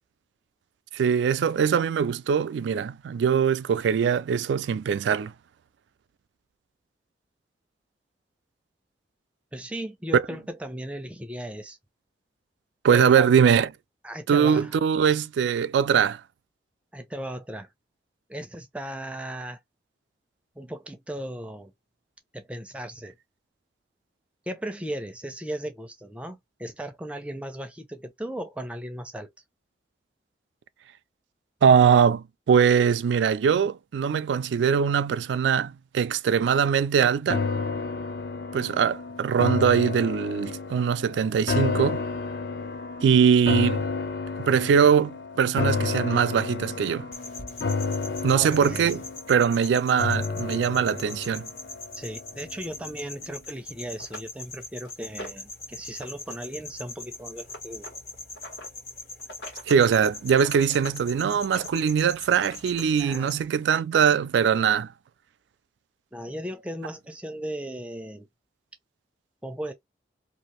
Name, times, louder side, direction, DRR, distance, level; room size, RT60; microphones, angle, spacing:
voice 1, 0.9-5.3 10.1-10.2 12.8-13.7 14.3-16.2 31.6-37.5 38.5-42.1 43.0-43.9 44.5-47.1 48.2-49.0 49.3-51.5 59.7-64.9, right 7 dB, 85° right, 0.3 m, -22 dB
voice 2, 9.5-11.8 12.9-13.3 14.0-14.7 16.9-17.7 18.3-19.6 20.6-21.7 22.3-23.1 24.5-29.3 48.3-49.0 51.9-57.9 62.9-63.4 66.1-68.3 69.4-69.7, right 1 dB, 5° right, 0.4 m, -36 dB
sound 1, 37.3-52.6 53.0-53.1, left 4 dB, 60° left, 0.5 m, -31 dB
sound 2, 47.1-63.4, left 2 dB, 40° left, 1.3 m, -42 dB
sound 3, 53.4-53.5 54.0-55.5 55.9-56.3 56.6-58.7 59.2-59.8 60.1-61.0 61.4-62.8 63.8-63.9 64.3-64.4, equal, 75° left, 1.5 m, -43 dB
2.7 x 2.4 x 3.0 m
head